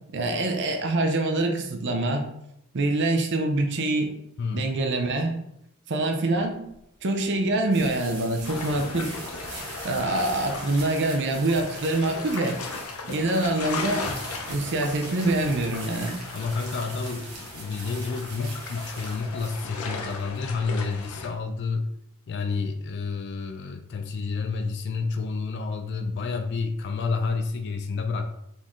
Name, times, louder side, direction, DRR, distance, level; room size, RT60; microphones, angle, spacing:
voice 1, 0.1-2.2 2.7-4.1 4.5-5.3 5.9-6.6 7.0-9.1 9.8-12.6 13.1-14.1 14.5-16.2, right 2 dB, 55° right, 3 dB, 0.6 m, -25 dB
sound 1, 6.7-21.4, right 3 dB, 90° right, 1.3 m, -43 dB
sound 2, 8.4-21.3, left 3 dB, 75° left, 0.7 m, -37 dB
voice 2, 16.3-21.9 22.3-28.3, left 4 dB, 50° left, 6 dB, 0.3 m, -29 dB
4.3 x 3.6 x 3.1 m, 0.79 s
head